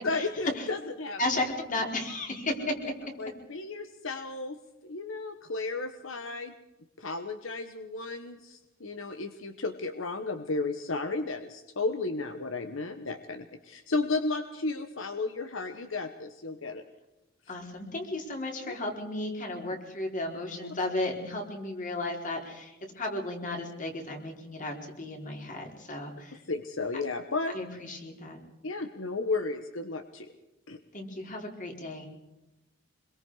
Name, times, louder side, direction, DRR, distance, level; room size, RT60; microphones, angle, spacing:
voice 1, 0.0-1.2 3.2-4.6 4.8-6.5 7.0-16.8 18.7-18.8 26.5-27.5 28.6-30.3 30.7-30.8, left 3 dB, 75° left, 8 dB, 1.3 m, -33 dB
voice 2, 1.2-2.7 17.5-26.4 27.5-28.4 30.9-32.1, left 2 dB, 40° left, 2 dB, 4.3 m, -34 dB
26.0 x 22.5 x 4.9 m, 0.98 s
head